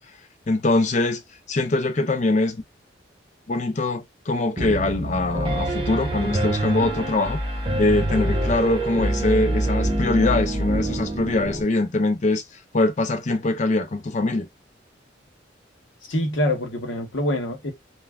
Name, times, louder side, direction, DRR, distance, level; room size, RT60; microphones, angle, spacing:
voice 1, 0.5-1.2 1.5-2.6 3.5-7.4 7.8-12.4 12.7-14.5, left 2 dB, 40° left, 0.5 m, -23 dB
Piano, 4.6-11.6, right 1 dB, 25° right, 0.8 m, -25 dB
voice 2, 16.1-17.7, left 1 dB, 90° left, 1.0 m, -25 dB
3.3 x 2.2 x 2.3 m
head